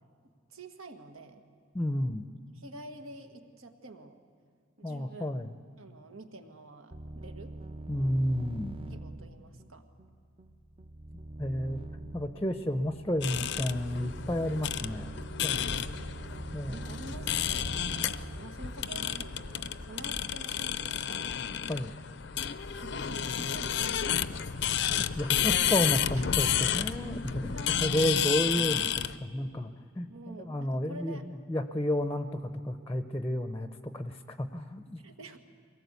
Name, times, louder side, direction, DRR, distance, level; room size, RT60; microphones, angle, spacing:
voice 1, 0.5-1.4 2.0-2.1 2.5-4.2 4.8-5.4 5.8-7.6 8.9-9.9 16.7-21.5 22.7-24.7 25.5-25.7 26.3-26.5 27.5-27.9 30.0-31.3 35.0-35.4, right 2 dB, 85° right, 6 dB, 1.7 m, -48 dB
voice 2, 1.7-2.3 4.8-5.5 7.9-8.8 11.4-11.8 12.1-15.2 15.4-15.6 16.5-16.8 21.7-21.9 24.9-27.5 27.8-29.7 30.0-35.0, left 1 dB, 10° left, 9 dB, 0.6 m, -31 dB
sound 1, 6.9-19.4, right 2 dB, 25° right, 0.6 m, -44 dB
sound 2, 13.2-29.2, left 9 dB, 55° left, 0.6 m, -31 dB
sound 3, 18.7-18.8 19.0-19.1 19.4-19.9 20.1-20.3 20.5-20.6 20.9-21.0 21.3-21.4, equal, 50° right, 1.6 m, -49 dB
23.0 x 18.5 x 8.2 m, 2.3 s
head